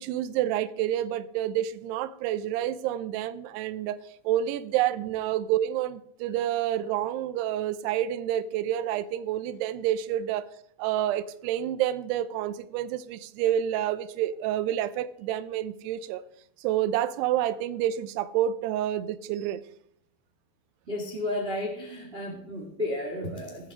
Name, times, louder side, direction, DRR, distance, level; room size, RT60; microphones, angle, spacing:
voice 1, 0.0-4.0 4.3-10.5 10.8-16.2 16.6-19.6, right 11 dB, 80° right, 2.6 m, -28 dB
voice 2, 20.9-23.7, left 1 dB, 35° right, 0.9 m, -33 dB
17.5 x 7.7 x 4.9 m
omnidirectional pair, 5.1 m